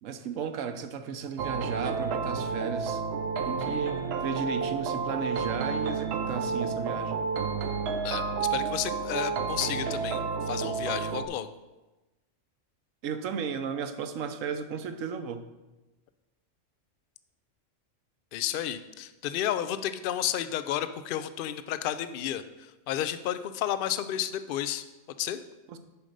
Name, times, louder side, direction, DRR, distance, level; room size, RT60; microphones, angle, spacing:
voice 1, 0.0-3.0 3.5-7.2 13.0-15.5 25.7-25.8, right 6 dB, 85° right, 9 dB, 1.1 m, -34 dB
sound 1, 1.4-11.3, right 5 dB, 60° right, 0.8 m, -30 dB
voice 2, 8.0-11.5 18.3-24.8 25.2-25.4, left 11 dB, 60° left, 12 dB, 0.6 m, -32 dB
7.0 x 5.1 x 6.6 m, 1.1 s
omnidirectional pair, 1.3 m